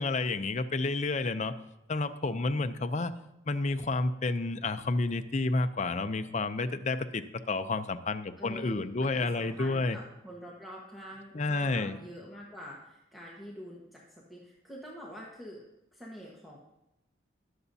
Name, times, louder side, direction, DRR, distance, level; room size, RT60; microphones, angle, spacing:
voice 1, 0.0-1.5 1.9-3.1 3.5-10.0 11.3-12.0, left 3 dB, 40° left, 9 dB, 0.5 m, -30 dB
voice 2, 8.4-15.6 15.9-16.6, equal, ahead, -5 dB, 1.3 m, -46 dB
20.5 x 6.9 x 2.8 m, 0.90 s
head